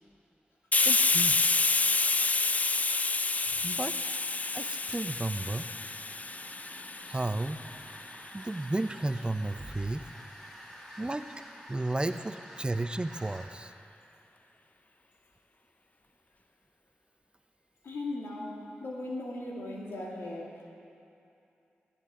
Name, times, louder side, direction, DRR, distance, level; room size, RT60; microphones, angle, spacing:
Hiss, 0.7-8.1, left 3 dB, 40° left, 0.4 m, -28 dB
voice 1, 0.9-1.7 3.6-3.9 4.5-5.7 7.1-7.6 8.3-10.1 11.0-11.2 11.7-13.7, right 2 dB, 25° right, 10 dB, 0.6 m, -33 dB
sound 1, 4.0-13.5, equal, 5° left, 3.8 m, -49 dB
voice 2, 17.8-20.5, left 2 dB, 90° left, -3 dB, 2.4 m, -38 dB
20.5 x 13.5 x 3.8 m, 2.7 s
cardioid pair, 45°, 4 cm